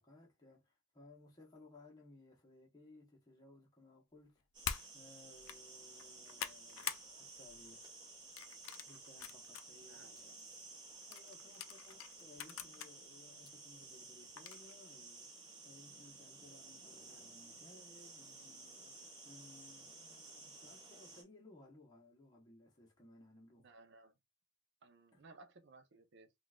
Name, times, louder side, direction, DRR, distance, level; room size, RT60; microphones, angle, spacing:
voice 1, 0.0-4.5 4.9-7.8 8.9-23.8 25.1-25.2, left 2 dB, 20° left, 1.0 m, -61 dB
sound 1, 4.5-21.2, right 3 dB, 20° right, 0.9 m, -55 dB
sound 2, 4.6-4.9 5.3-5.6 6.0-7.1 7.4-7.7 8.4-9.6 10.2-10.3 11.1-12.9 13.5-13.6 14.4-14.7, left 9 dB, 75° left, 0.4 m, -44 dB
voice 2, 9.8-10.1 23.6-24.2 24.8-26.3, right 3 dB, 60° right, 0.6 m, -60 dB
3.8 x 2.4 x 2.2 m
head